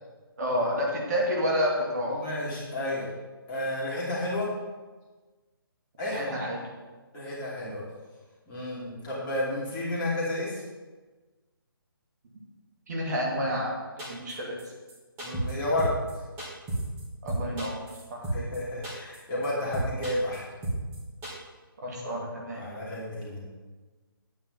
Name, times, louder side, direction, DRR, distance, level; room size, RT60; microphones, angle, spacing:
voice 1, 0.4-2.2 6.1-6.6 12.9-13.8 14.1-14.6 17.2-17.8 18.1-18.3 21.8-22.6, equal, 45° right, -2 dB, 2.4 m, -29 dB
voice 2, 2.1-3.1 3.5-4.5 6.0-6.4 7.1-7.8 8.5-10.6 15.2-15.9 18.3-20.4 22.5-23.4, left 1 dB, 15° left, -7 dB, 2.8 m, -31 dB
sound 1, 14.0-14.3 14.6-14.7 14.9-15.0 15.2-15.5 15.8-16.1 16.4-17.0 17.3-18.6 18.8-19.2 19.4-19.5 19.7-20.4 20.6-21.0 21.2-21.3, right 1 dB, 15° right, 3.0 m, -31 dB
11.0 x 8.8 x 4.2 m, 1.3 s
figure-of-eight pair, 150°, 12 cm